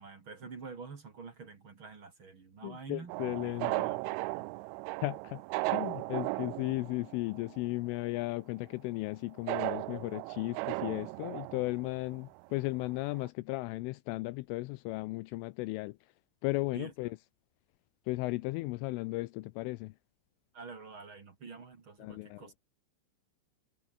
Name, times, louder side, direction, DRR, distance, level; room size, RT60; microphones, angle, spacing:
voice 1, 0.0-3.1 3.6-4.5 16.7-16.9 20.5-22.6, right 5 dB, 40° right, 2.1 m, -47 dB
voice 2, 2.6-3.9 5.0-5.4 5.7-16.0 16.4-17.2 18.1-19.9 22.0-22.4, left 21 dB, 85° left, 3.2 m, -35 dB
sound 1, 3.1-7.8 8.1-8.2 9.5-12.4 12.9-13.0 13.1-13.3, right 24 dB, 85° right, 2.9 m, -36 dB
omnidirectional pair, 5.7 m